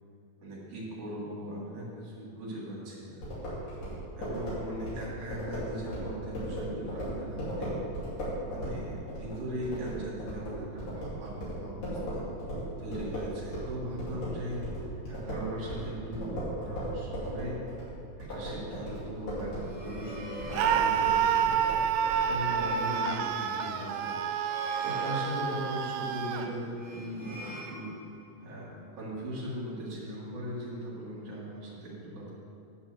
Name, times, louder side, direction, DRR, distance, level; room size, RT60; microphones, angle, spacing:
voice 1, 0.4-3.2 4.2-7.8 8.4-12.2 12.8-14.6 15.1-17.6 18.2-21.6 22.3-24.2 24.8-27.9 28.4-28.7 29.0-32.3, equal, 60° right, -6 dB, 3.2 m, -39 dB
sound 1, 3.2-13.7 14.0-22.7, equal, 65° left, 4.2 m, -37 dB
sound 2, 19.4-28.4, equal, 25° right, 2.3 m, -45 dB
Screaming, 20.5-26.5, right 8 dB, 85° right, 2.4 m, -28 dB
9.8 x 4.4 x 7.6 m, 2.5 s
omnidirectional pair, 4.3 m